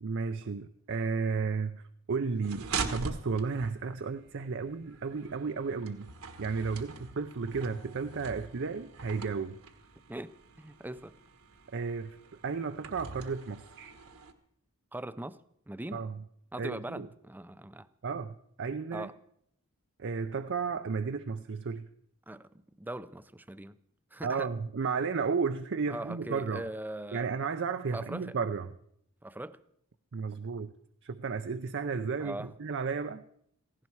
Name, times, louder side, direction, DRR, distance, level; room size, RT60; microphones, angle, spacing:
voice 1, 0.0-1.8 2.1-6.1 6.4-9.6 11.7-12.2 12.4-13.9 15.9-16.2 16.6-17.1 18.0-19.1 20.0-21.9 24.2-26.7 27.1-28.7 30.1-30.7 31.0-33.2, right 5 dB, 55° right, 0.6 m, -33 dB
sound 1, 2.4-14.3, right 4 dB, 70° right, 1.4 m, -43 dB
voice 2, 10.1-11.2 14.9-16.0 16.5-17.9 18.9-19.1 22.3-23.8 24.1-24.5 25.9-27.3 27.9-28.4 29.2-29.6 32.2-32.5, right 1 dB, 10° right, 0.5 m, -41 dB
17.0 x 15.5 x 4.6 m
head